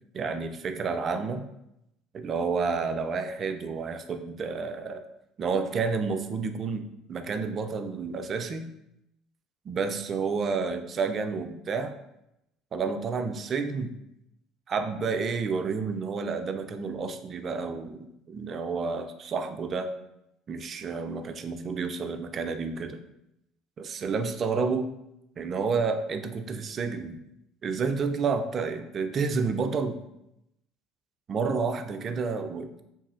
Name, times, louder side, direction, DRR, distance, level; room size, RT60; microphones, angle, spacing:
voice 1, 0.1-1.4 2.1-5.0 5.4-8.7 9.7-11.9 12.7-13.9 14.7-19.9 20.5-23.0 23.8-24.9 25.4-27.2 27.6-30.0 31.3-32.7, right 4 dB, 45° right, 8 dB, 0.3 m, -30 dB
3.1 x 2.7 x 2.4 m, 0.83 s
hypercardioid pair, 65°, 0 cm